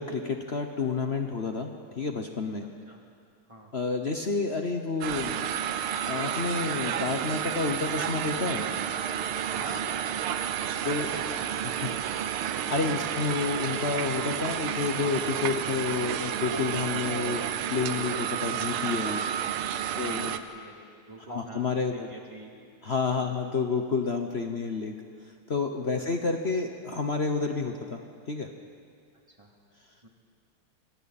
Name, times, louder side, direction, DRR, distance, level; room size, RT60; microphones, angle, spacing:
voice 1, 0.0-2.6 3.7-5.4 6.1-8.7 10.8-11.1 11.6-11.9 12.7-17.4 17.7-19.2 20.0-20.3 21.3-22.1 22.8-24.9 25.5-28.0 28.3-28.5, left 4 dB, 45° left, 4 dB, 0.9 m, -29 dB
sound 1, 5.0-20.4, right 9 dB, 75° right, 1.6 m, -31 dB
voice 2, 9.5-10.2 10.4-11.4 11.9-12.3 20.0-22.5 23.2-23.4 25.9-26.1 29.3-29.5 30.0-30.1, right 1 dB, 15° right, -1 dB, 2.6 m, -46 dB
26.5 x 25.5 x 4.2 m, 2.2 s
omnidirectional pair, 2.4 m